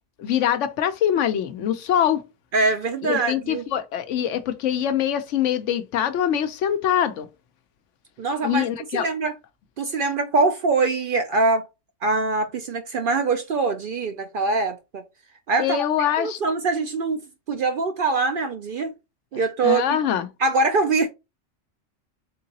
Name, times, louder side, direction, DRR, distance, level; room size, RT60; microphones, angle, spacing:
voice 1, 0.2-2.2 3.0-7.3 8.4-9.1 15.6-16.4 19.6-20.3, left 10 dB, 80° left, 0.9 m, -23 dB
voice 2, 2.5-3.6 8.2-8.7 8.9-9.3 9.8-11.6 12.0-15.0 15.5-15.8 16.2-18.9 19.3-19.8 20.4-21.1, right 3 dB, 60° right, 0.6 m, -23 dB
3.8 x 3.8 x 2.7 m
omnidirectional pair, 1.3 m